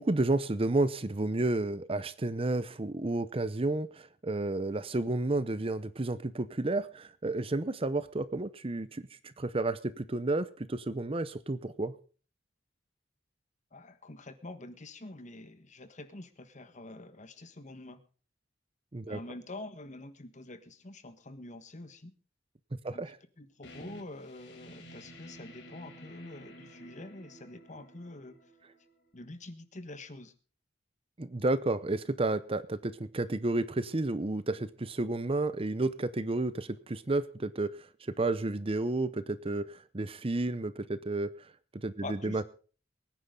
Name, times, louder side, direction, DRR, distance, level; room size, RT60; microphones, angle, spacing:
voice 1, 0.0-11.9 18.9-19.2 22.8-23.2 31.2-37.7 38.2-41.3 41.7-42.5, right 2 dB, 30° right, 15 dB, 0.7 m, -31 dB
voice 2, 13.7-18.0 19.1-22.1 22.9-23.0 23.4-28.4 29.1-30.3 42.0-42.5, left 2 dB, 40° left, 10 dB, 1.4 m, -46 dB
sound 1, 23.6-29.1, equal, 80° left, 4.3 m, -52 dB
23.0 x 10.0 x 3.8 m, 0.38 s
head